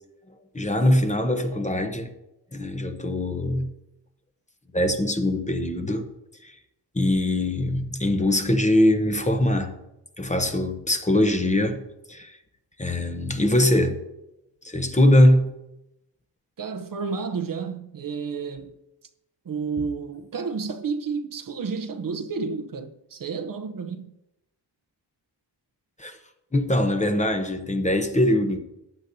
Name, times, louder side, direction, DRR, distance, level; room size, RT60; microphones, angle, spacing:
voice 1, 0.5-2.1 2.5-3.7 4.7-6.1 6.4-6.6 6.9-9.7 10.2-12.4 12.8-14.0 14.6-15.5 26.0-26.2 26.5-28.6, left 1 dB, 15° left, 0.9 m, -22 dB
voice 2, 16.6-18.8 19.5-24.1, right 5 dB, 55° right, 0.7 m, -31 dB
15.0 x 9.9 x 2.7 m
wide cardioid pair, 105°, 41 cm